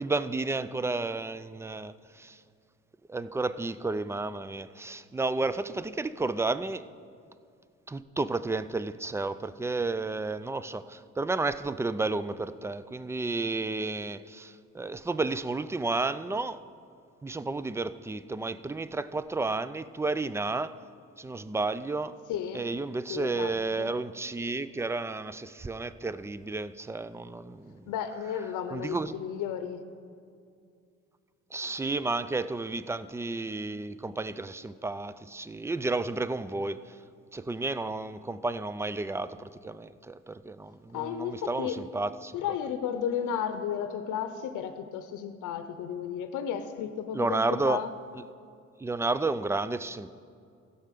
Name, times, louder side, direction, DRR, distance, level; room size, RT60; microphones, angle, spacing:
voice 1, 0.0-2.4 3.1-6.8 7.9-16.6 17.2-20.8 21.2-22.2 22.5-27.9 28.7-29.2 31.5-37.0 37.3-42.4 47.1-47.8 48.8-50.1, right 3 dB, 10° right, 14 dB, 0.4 m, -32 dB
voice 2, 22.3-22.7 23.1-23.5 23.8-23.9 27.9-29.8 40.9-41.8 42.3-47.9, left 8 dB, 85° left, 9 dB, 0.7 m, -33 dB
15.5 x 5.6 x 6.7 m, 2.4 s
cardioid pair, 90°, 30 cm